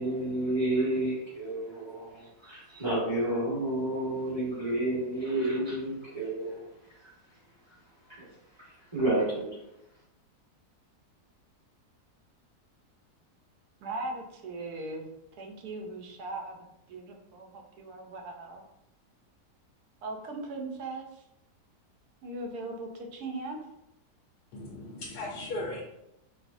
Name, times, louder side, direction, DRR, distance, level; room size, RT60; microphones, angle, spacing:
voice 1, 0.0-6.6 7.0-7.1 8.6-9.5, right 1 dB, 20° right, -7 dB, 1.1 m, -30 dB
voice 2, 13.8-15.1 15.4-18.6 20.0-21.2 22.2-23.6, right 2 dB, 75° right, 2 dB, 1.1 m, -39 dB
voice 3, 24.5-25.8, left 2 dB, 85° left, -2 dB, 1.2 m, -37 dB
4.6 x 2.0 x 2.6 m, 0.85 s
omnidirectional pair, 1.7 m